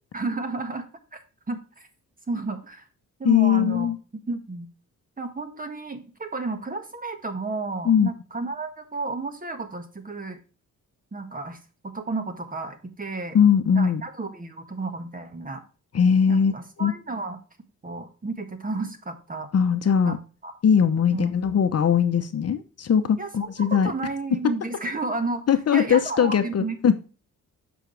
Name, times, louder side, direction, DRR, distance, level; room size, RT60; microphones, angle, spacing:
voice 1, 0.1-1.2 1.5-1.9 2.3-2.9 3.2-3.9 4.3-4.7 5.2-10.4 11.1-11.6 11.8-13.4 13.7-15.6 16.3-17.4 17.8-19.5 20.0-20.2 20.4-20.5 21.1-21.4 23.2-25.4 25.7-26.8, right 3 dB, 25° right, 1.6 m, -32 dB
voice 2, 3.2-4.0 7.9-8.1 13.3-14.0 15.9-16.5 16.8-16.9 19.5-20.2 20.6-23.9 25.5-26.9, left 7 dB, 50° left, 0.9 m, -20 dB
8.1 x 6.1 x 3.2 m
cardioid pair, 110°, 32 cm